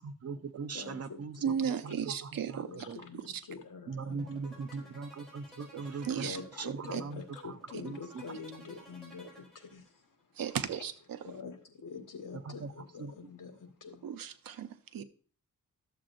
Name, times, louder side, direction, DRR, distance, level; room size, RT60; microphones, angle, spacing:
voice 1, 0.0-1.4 1.8-3.0 3.9-6.3 6.6-8.2 12.3-12.7 13.0-13.1, right 4 dB, 45° right, 0.7 m, -40 dB
voice 2, 0.7-1.7 2.6-4.4 4.7-5.0 6.2-9.9 11.2-14.1, left 5 dB, 70° left, 1.5 m, -46 dB
voice 3, 1.4-2.7 3.1-3.4 5.7-6.4 6.6-7.0 10.3-11.3 14.0-15.0, right 8 dB, 85° right, 0.8 m, -35 dB
sound 1, 4.1-10.0, left 1 dB, ahead, 4.7 m, -54 dB
13.0 x 7.4 x 2.6 m
wide cardioid pair, 130°, 34 cm